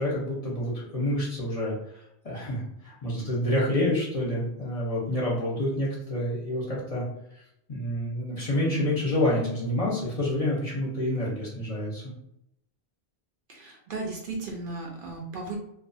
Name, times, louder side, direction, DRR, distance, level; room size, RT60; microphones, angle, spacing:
voice 1, 0.0-7.0 7.7-12.0, left 1 dB, 40° left, -5 dB, 0.7 m, -28 dB
voice 2, 13.5-15.6, right 3 dB, 60° right, 0 dB, 0.7 m, -35 dB
2.4 x 2.3 x 2.6 m, 0.78 s
omnidirectional pair, 1.1 m